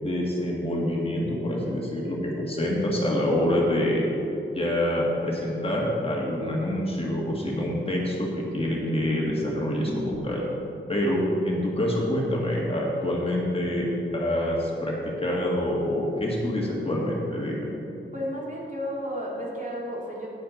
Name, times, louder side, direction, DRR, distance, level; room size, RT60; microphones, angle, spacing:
voice 1, 0.0-4.0 4.5-10.4 10.9-13.9 14.1-17.7, left 1 dB, 25° left, -3 dB, 1.7 m, -26 dB
voice 2, 18.1-20.3, equal, 40° right, -4 dB, 2.1 m, -32 dB
10.0 x 9.2 x 3.9 m, 2.9 s
wide cardioid pair, 100°, 21 cm